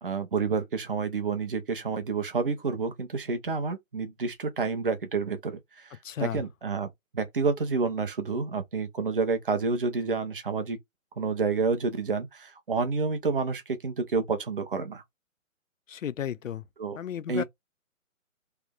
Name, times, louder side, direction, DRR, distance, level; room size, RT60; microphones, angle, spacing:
voice 1, 0.0-10.8 11.2-15.0 16.8-17.0 17.3-17.4, right 4 dB, 40° right, 0.7 m, -29 dB
voice 2, 6.0-6.4 15.9-16.6 17.0-17.4, left 10 dB, 70° left, 0.5 m, -33 dB
3.3 x 2.1 x 3.4 m
hypercardioid pair, 170°, 41 cm